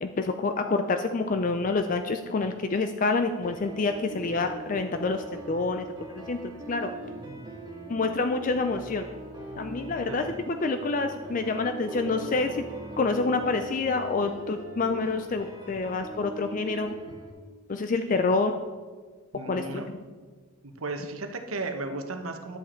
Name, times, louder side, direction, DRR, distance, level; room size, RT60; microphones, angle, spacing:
voice 1, 0.0-5.9 6.3-6.4 6.7-6.9 7.9-9.0 9.6-12.7 13.0-16.9 17.7-18.5 19.5-19.8, left 3 dB, 40° left, 7 dB, 0.4 m, -27 dB
sound 1, 3.4-17.3, right 1 dB, 20° right, 2.0 m, -41 dB
voice 2, 7.0-7.6 9.8-10.3 19.3-19.9 20.6-22.6, right 2 dB, 85° right, 6 dB, 1.0 m, -36 dB
10.5 x 7.4 x 4.4 m, 1.5 s
head